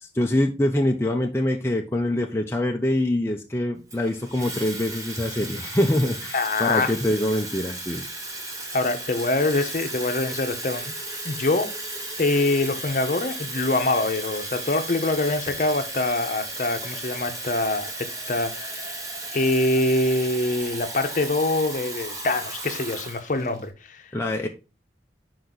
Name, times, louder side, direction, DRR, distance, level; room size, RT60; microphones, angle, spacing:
voice 1, 0.0-8.0 24.1-24.5, left 1 dB, 15° left, 0.6 m, -24 dB
Water tap faucet / Fill (with liquid), 3.9-23.7, right 2 dB, 20° right, 1.1 m, -35 dB
voice 2, 6.3-7.0 8.7-10.9 11.2-11.7 12.2-19.0 19.3-24.1, left 2 dB, 45° left, 0.8 m, -24 dB
6.4 x 4.7 x 4.0 m
head